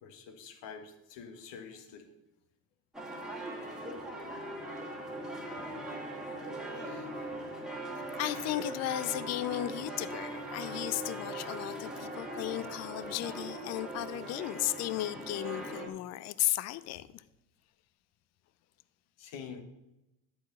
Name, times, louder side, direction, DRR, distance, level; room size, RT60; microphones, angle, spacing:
voice 1, 0.0-2.1 19.2-19.6, left 6 dB, 60° left, 6 dB, 1.5 m, -46 dB
sound 1, 2.9-15.9, right 1 dB, ahead, 1.8 m, -40 dB
voice 2, 8.2-17.2, left 15 dB, 35° left, 17 dB, 0.4 m, -35 dB
8.5 x 4.6 x 6.7 m, 0.94 s
hypercardioid pair, 70°, 48 cm